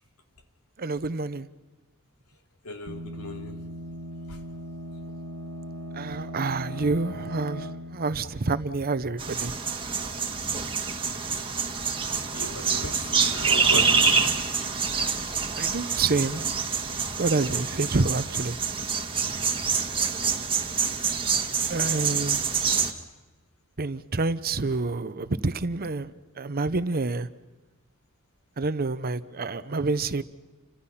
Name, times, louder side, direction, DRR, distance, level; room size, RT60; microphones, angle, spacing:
voice 1, 0.8-1.5 5.9-9.5 15.6-16.5 17.2-18.6 21.7-22.4 23.8-27.3 28.6-30.2, right 3 dB, 45° right, 0.8 m, -28 dB
voice 2, 2.6-3.5 12.3-14.0, left 1 dB, 90° left, 3.1 m, -36 dB
sound 1, 2.9-9.5, equal, 90° right, 1.3 m, -39 dB
sound 2, 9.2-22.9, right 5 dB, 25° right, 1.7 m, -26 dB
30.0 x 25.5 x 5.8 m
head